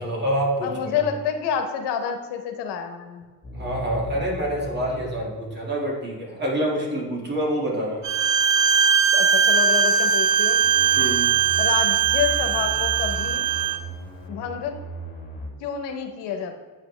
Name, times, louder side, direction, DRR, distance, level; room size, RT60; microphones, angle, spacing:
voice 1, 0.0-0.9 3.5-8.0 11.0-11.3, right 1 dB, 25° right, -2 dB, 2.0 m, -26 dB
voice 2, 0.6-3.3 9.1-10.6 11.6-13.4 14.3-14.7 15.6-16.5, left 7 dB, 90° left, 5 dB, 1.0 m, -28 dB
sound 1, 3.4-5.4 10.6-15.5, equal, 20° left, 2.2 m, -37 dB
Bowed string instrument, 8.0-13.8, right 6 dB, 45° right, 0.5 m, -20 dB
8.7 x 5.1 x 3.3 m, 1.4 s
cardioid pair, 110°, 40 cm